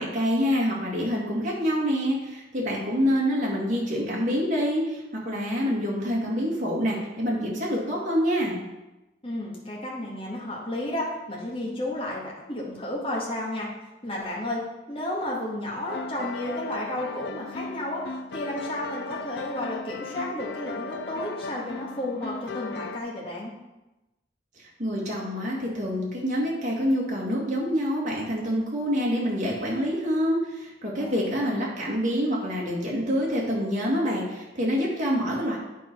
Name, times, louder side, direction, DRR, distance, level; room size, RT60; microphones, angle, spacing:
voice 1, 0.0-8.6 24.6-35.6, equal, 45° right, -4 dB, 2.2 m, -26 dB
voice 2, 9.2-13.7 14.0-14.6 14.9-18.0 18.3-23.5 31.0-31.7, left 1 dB, 30° left, -4 dB, 1.8 m, -32 dB
sound 1, 15.9-23.0, left 4 dB, 75° left, 0.5 m, -37 dB
9.2 x 4.6 x 5.3 m, 1.0 s
head